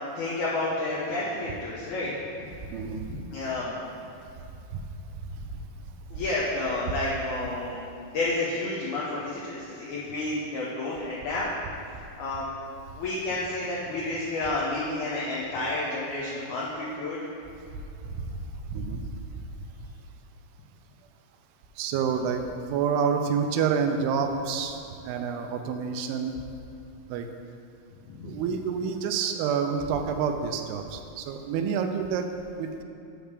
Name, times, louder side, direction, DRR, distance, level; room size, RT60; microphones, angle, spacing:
voice 1, 0.1-2.1 3.1-3.7 6.1-7.8 8.1-11.5 12.2-12.5 13.0-17.2 28.0-28.3, left 2 dB, 90° left, -6 dB, 1.7 m, -30 dB
voice 2, 2.6-3.1 4.7-4.8 5.1-5.6 6.1-6.2 12.9-13.0 17.7-19.1 19.4-19.5 21.8-26.4 27.1-27.3 28.2-32.8, right 6 dB, 90° right, 6 dB, 2.6 m, -29 dB
8.8 x 3.4 x 6.5 m, 2.6 s
omnidirectional pair, 4.5 m